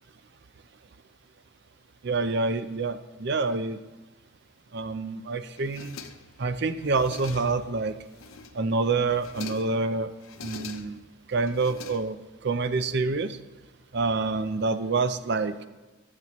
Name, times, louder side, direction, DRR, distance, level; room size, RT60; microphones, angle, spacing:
voice 1, 2.0-3.8 4.7-6.0 6.4-8.0 8.5-10.1 10.4-11.0 11.3-13.4 13.9-15.7, right 3 dB, 55° right, 11 dB, 0.5 m, -27 dB
sound 1, 5.6-6.4 6.8-7.7 8.1-8.7 9.1-9.8 10.2-11.1 11.5-12.4, left 5 dB, 90° left, 0.7 m, -44 dB
18.5 x 7.6 x 3.0 m, 1.1 s
head